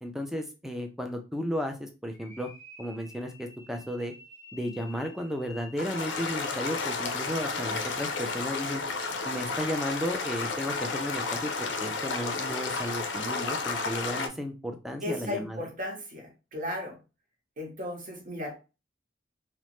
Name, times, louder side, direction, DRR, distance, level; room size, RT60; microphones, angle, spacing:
voice 1, 0.0-2.5 2.8-4.1 4.5-8.8 9.2-15.6, equal, ahead, 4 dB, 0.3 m, -34 dB
sound 1, 2.1-6.9, left 3 dB, 15° left, 0.9 m, -50 dB
sound 2, 5.8-14.3, left 4 dB, 75° left, 0.5 m, -32 dB
voice 2, 15.0-17.0 17.6-18.6, left 1 dB, 45° right, 1 dB, 0.9 m, -35 dB
3.0 x 2.0 x 3.0 m, 0.30 s
head